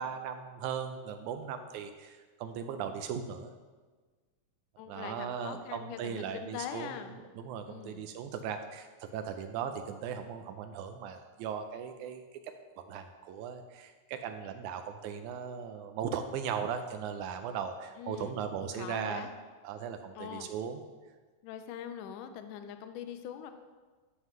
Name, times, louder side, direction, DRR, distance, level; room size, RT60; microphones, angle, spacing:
voice 1, 0.0-3.5 4.9-19.3 19.6-20.8, right 7 dB, 85° right, 7 dB, 1.7 m, -38 dB
voice 2, 4.8-7.1 7.7-8.1 18.0-19.3 20.2-20.5 21.4-23.5, left 9 dB, 80° left, 8 dB, 2.1 m, -42 dB
13.0 x 7.4 x 3.1 m, 1.4 s
omnidirectional pair, 4.0 m